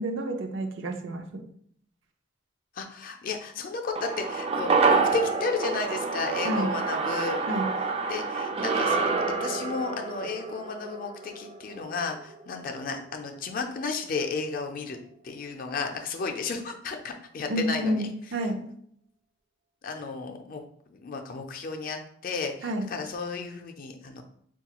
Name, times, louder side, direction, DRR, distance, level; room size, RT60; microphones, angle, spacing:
voice 1, 0.0-1.4 6.5-6.7 7.5-7.7 17.5-18.6 22.6-22.9, right 1 dB, 85° right, 4 dB, 0.5 m, -29 dB
voice 2, 2.7-7.4 8.1-9.0 9.4-15.0 15.2-18.0 19.8-20.6 20.9-24.2, left 4 dB, 50° left, 4 dB, 0.4 m, -33 dB
sound 1, 4.0-12.5 12.7-12.8, right 4 dB, 30° right, 0.3 m, -28 dB
3.9 x 2.3 x 2.9 m, 0.65 s
head